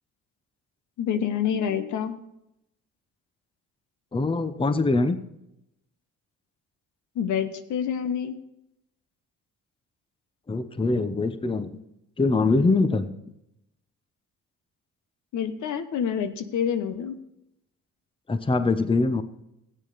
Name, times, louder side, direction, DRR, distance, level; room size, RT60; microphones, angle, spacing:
voice 1, 1.0-2.2 7.1-8.3 15.3-17.2, left 8 dB, 75° left, 11 dB, 1.1 m, -27 dB
voice 2, 4.1-5.2 10.5-11.8 12.2-13.1 18.3-19.2, left 3 dB, 15° left, 11 dB, 0.9 m, -23 dB
14.0 x 9.0 x 4.1 m, 0.83 s
cardioid pair, 90°, 30 cm